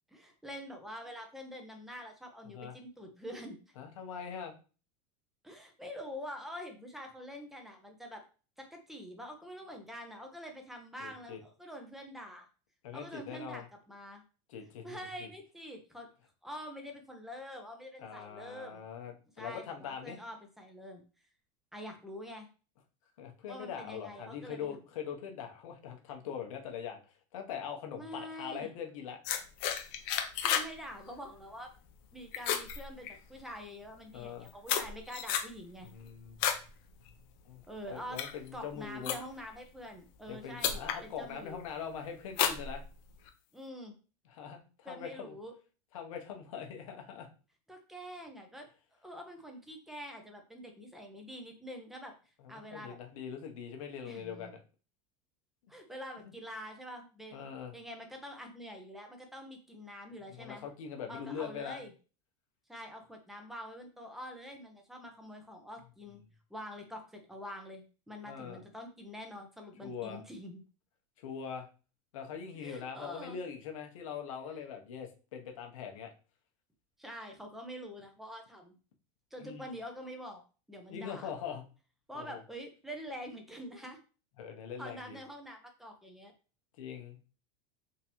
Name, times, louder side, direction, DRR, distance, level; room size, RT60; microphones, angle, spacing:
voice 1, 0.1-3.7 5.4-8.2 8.6-12.5 12.9-14.2 14.8-16.1 16.4-18.8 19.4-21.0 21.7-22.5 23.5-24.8 28.0-28.7 30.4-31.7 32.1-35.9 37.7-38.2 38.5-41.6 43.5-43.9 44.8-45.5 47.7-48.7 49.0-52.1 52.5-53.0 54.0-54.5 55.7-60.6 61.1-61.9 62.7-66.2 66.5-70.6 72.5-73.4 77.0-78.8 79.3-80.4 80.7-81.3 82.1-84.0 84.8-86.3, equal, ahead, 3 dB, 0.9 m, -46 dB
voice 2, 3.8-4.5 11.0-11.4 12.8-13.7 14.5-15.3 18.0-20.2 23.2-27.0 27.3-29.2 34.1-34.5 35.8-36.4 37.5-37.6 37.9-39.2 40.3-42.8 44.3-45.3 45.9-47.3 52.4-54.6 57.3-57.7 60.3-61.8 68.3-68.6 69.8-70.2 71.2-71.7 72.1-76.1 79.4-79.7 80.9-81.6 82.1-82.4 84.4-85.2 86.8-87.2, left 7 dB, 80° left, 3 dB, 0.9 m, -42 dB
sound 1, 29.2-30.7 31.0-31.4 31.8-32.1 32.3-33.5 34.1-36.7 37.1-37.4 37.9-39.5 40.2-40.3 40.6-41.0 41.5-41.9 42.3-43.3, left 9 dB, 60° left, 0.7 m, -33 dB
3.6 x 3.0 x 3.0 m, 0.36 s
supercardioid pair, 115°, 17 cm